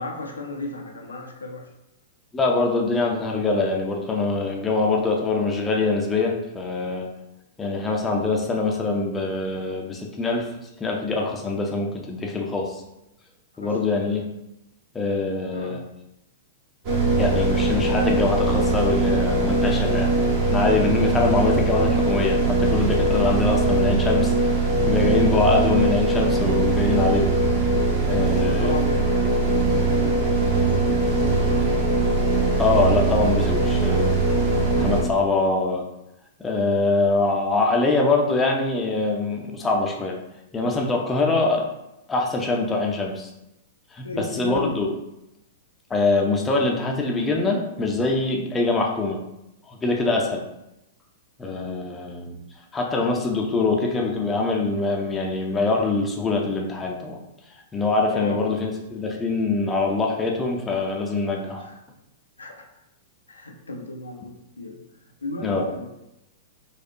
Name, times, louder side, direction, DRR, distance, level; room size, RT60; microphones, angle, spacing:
voice 1, 0.0-1.6 13.6-13.8 15.5-15.8 28.4-31.9 44.0-44.8 58.1-58.4 61.6-61.8 62.4-62.7 63.3-64.8 65.2-65.9, left 3 dB, 80° left, 1 dB, 0.6 m, -35 dB
voice 2, 2.3-7.1 7.6-10.5 10.8-12.8 13.6-14.3 14.9-15.8 17.2-20.1 20.5-24.6 24.9-27.3 28.1-28.8 32.6-34.1 34.8-35.8 36.4-40.2 40.5-41.6 42.1-43.3 43.9-44.9 45.9-49.2 49.7-50.4 51.4-52.4 52.7-57.2 57.7-61.7 65.4-65.6, left 3 dB, 15° left, 0 dB, 0.5 m, -23 dB
sound 1, 16.8-35.0, right 2 dB, 40° right, 1.0 m, -21 dB
4.1 x 2.4 x 2.8 m, 0.88 s
figure-of-eight pair, 100°, 0 cm